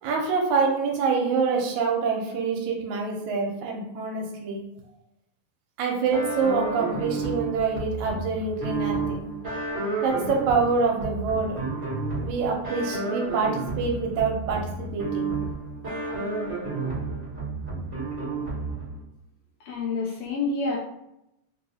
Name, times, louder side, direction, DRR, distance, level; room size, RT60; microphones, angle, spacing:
voice 1, 0.0-4.6 5.8-9.3 10.0-11.6 12.2-15.4, right 4 dB, 80° right, 1 dB, 1.9 m, -26 dB
sound 1, 6.1-19.0, right 3 dB, 35° right, 1.1 m, -31 dB
voice 2, 19.7-20.8, left 3 dB, 75° left, -2 dB, 1.6 m, -28 dB
4.7 x 2.7 x 2.7 m, 0.84 s
omnidirectional pair, 3.5 m